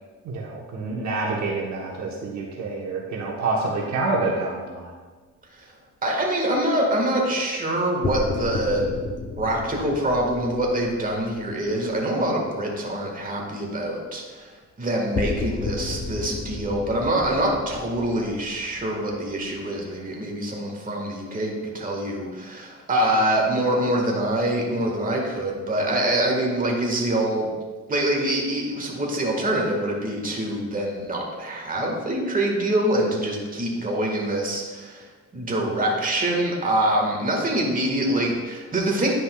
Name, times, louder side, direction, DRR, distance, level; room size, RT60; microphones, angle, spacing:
voice 1, 0.2-4.9, right 3 dB, 65° right, -2 dB, 1.1 m, -27 dB
voice 2, 6.0-8.9 9.4-27.5 27.9-35.1 35.3-39.1, right 1 dB, 30° right, -1 dB, 1.6 m, -25 dB
sound 1, 8.0-12.3 15.1-19.8, left 3 dB, 40° left, 0.7 m, -33 dB
10.0 x 5.3 x 2.3 m, 1.3 s
cardioid pair, 90°, 30 cm